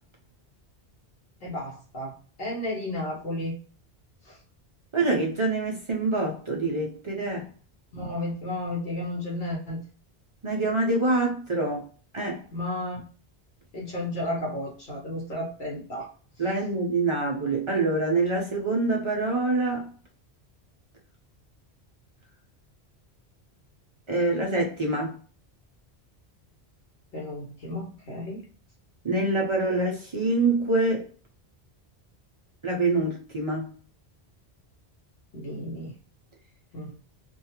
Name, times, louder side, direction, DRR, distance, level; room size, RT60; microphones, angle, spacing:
voice 1, 1.4-3.6 4.3-4.4 7.9-9.8 12.5-13.0 13.7-16.1 27.1-28.4 35.3-35.9 36.7-37.0, left 1 dB, 65° left, 1.0 m, -33 dB
voice 2, 4.9-7.5 10.4-11.8 12.1-12.4 16.4-19.9 24.1-25.2 29.0-31.1 32.6-33.7, right 2 dB, 50° right, 0.3 m, -25 dB
2.3 x 2.3 x 2.7 m
omnidirectional pair, 1.1 m